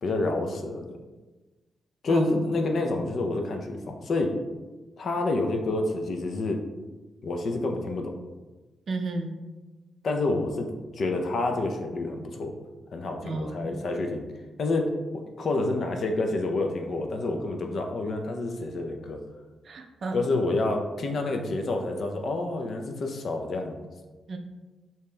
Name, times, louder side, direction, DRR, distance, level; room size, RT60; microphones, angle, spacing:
voice 1, 0.0-1.0 2.0-4.3 5.0-6.6 7.2-8.1 10.0-10.7 11.0-12.5 12.9-14.2 14.6-19.2 20.1-23.8, left 2 dB, 55° left, 4 dB, 0.5 m, -28 dB
voice 2, 8.9-9.3 13.2-13.8 19.7-20.2 24.3-24.4, right 3 dB, 55° right, 5 dB, 0.4 m, -32 dB
4.9 x 2.8 x 2.2 m, 1.2 s
cardioid pair, 110°, 0 cm